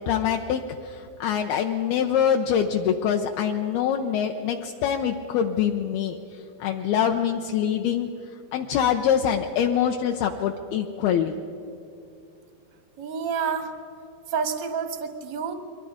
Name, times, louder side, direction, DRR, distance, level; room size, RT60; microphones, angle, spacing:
voice 1, 0.1-6.2 6.6-8.1 8.5-11.3, left 8 dB, 80° left, 3 dB, 2.3 m, -24 dB
voice 2, 13.0-13.7 14.3-15.5, right 6 dB, 75° right, 5 dB, 1.0 m, -28 dB
30.0 x 23.0 x 5.0 m, 2.6 s
omnidirectional pair, 5.2 m